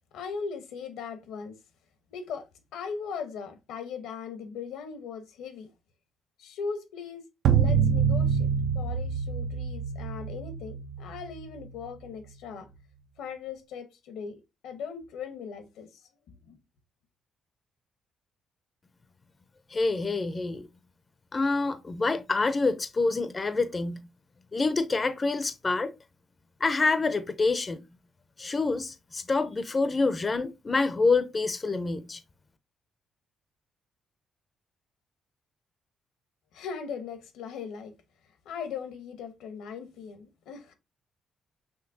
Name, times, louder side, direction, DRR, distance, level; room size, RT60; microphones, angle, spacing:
voice 1, 0.1-1.6 2.1-2.5 2.7-5.7 6.4-7.2 7.5-8.5 8.7-12.7 13.2-16.0 16.3-16.6 36.5-37.9 38.4-40.7, left 6 dB, 85° left, 0.9 m, -39 dB
sound 1, 7.4-11.9, right 7 dB, 70° right, 0.6 m, -26 dB
voice 2, 19.7-20.7 21.3-24.0 24.5-25.9 26.6-27.8 28.4-32.2, left 3 dB, 30° left, 0.5 m, -27 dB
5.8 x 3.2 x 2.7 m
cardioid pair, 80°, 0 cm